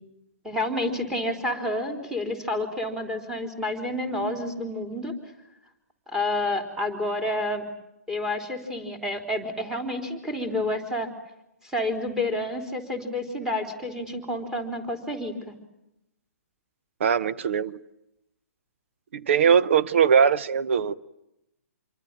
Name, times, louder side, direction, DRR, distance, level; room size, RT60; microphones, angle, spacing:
voice 1, 0.4-5.1 6.1-7.6 8.1-11.1 11.6-15.5, left 1 dB, 5° right, 3.8 m, -29 dB
voice 2, 17.0-17.8 19.1-20.9, right 7 dB, 50° right, 1.0 m, -21 dB
27.0 x 23.5 x 9.0 m
figure-of-eight pair, 125°, 8 cm